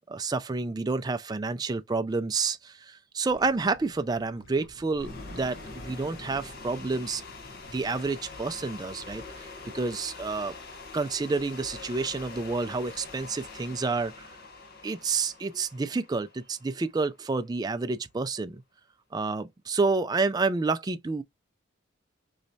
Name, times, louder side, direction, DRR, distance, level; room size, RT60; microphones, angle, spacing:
voice 1, 0.1-5.6 5.8-7.2 7.7-9.5 9.7-10.5 10.9-14.3 14.8-18.6 19.1-21.2, right 3 dB, 20° right, 0.3 m, -29 dB
sound 1, 3.3-8.7, left 1 dB, 80° left, 1.0 m, -54 dB
sound 2, 5.0-17.1, left 3 dB, 50° left, 1.0 m, -44 dB
4.0 x 3.2 x 2.6 m
head